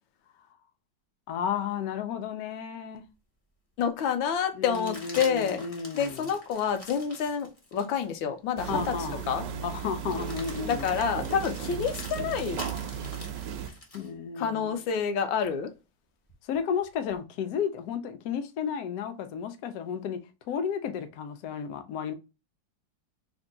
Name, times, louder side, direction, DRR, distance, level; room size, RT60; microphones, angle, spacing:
voice 1, 1.3-3.0 4.5-6.3 8.7-9.2 9.6-10.9 13.9-14.7 16.4-20.2 20.5-22.1, left 7 dB, 70° left, 0.9 m, -33 dB
sound 1, 3.1-3.2 4.6-8.1 8.6-8.7 10.0-14.1 16.3-17.2, left 1 dB, 50° left, 0.4 m, -46 dB
voice 2, 3.8-5.7 5.9-9.0 9.3-9.4 10.6-12.6 14.4-15.7, left 7 dB, 85° left, 1.4 m, -28 dB
sound 2, 8.6-13.7, right 8 dB, 75° right, 0.8 m, -35 dB
3.5 x 2.2 x 3.7 m
omnidirectional pair, 2.1 m